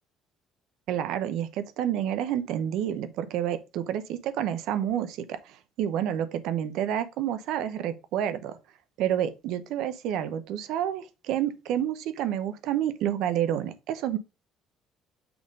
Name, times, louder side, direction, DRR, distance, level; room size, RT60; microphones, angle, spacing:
voice 1, 0.9-8.6 9.0-14.2, right 10 dB, 80° right, 0.8 m, -29 dB
6.1 x 3.7 x 5.2 m
cardioid pair, 130°, 0 cm